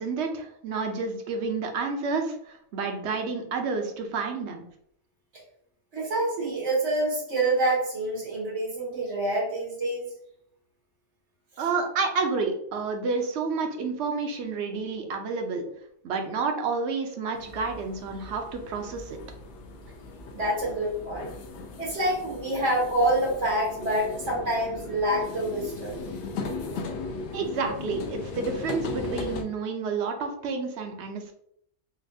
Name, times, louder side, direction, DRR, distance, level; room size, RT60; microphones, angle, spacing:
voice 1, 0.0-4.6 11.6-15.6 16.0-19.2 27.3-31.3, right 4 dB, 75° right, 4 dB, 0.9 m, -30 dB
voice 2, 5.9-10.1 20.3-21.3 21.8-26.1, right 1 dB, 90° right, -3 dB, 1.6 m, -27 dB
sound 1, 17.3-29.4, left 3 dB, 65° left, 0.7 m, -37 dB
4.1 x 2.3 x 2.6 m, 0.71 s
omnidirectional pair, 1.2 m